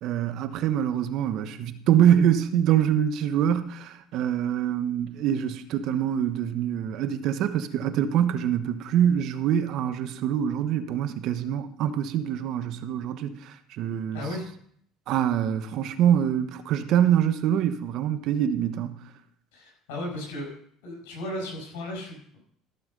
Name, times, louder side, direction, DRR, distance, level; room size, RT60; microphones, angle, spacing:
voice 1, 0.0-14.2 15.1-19.0, right 10 dB, 65° right, 1.1 m, -25 dB
voice 2, 14.1-14.5 19.5-20.5 20.8-22.4, left 1 dB, 90° left, 6.1 m, -35 dB
14.5 x 7.1 x 5.3 m
supercardioid pair, 95°, 0 cm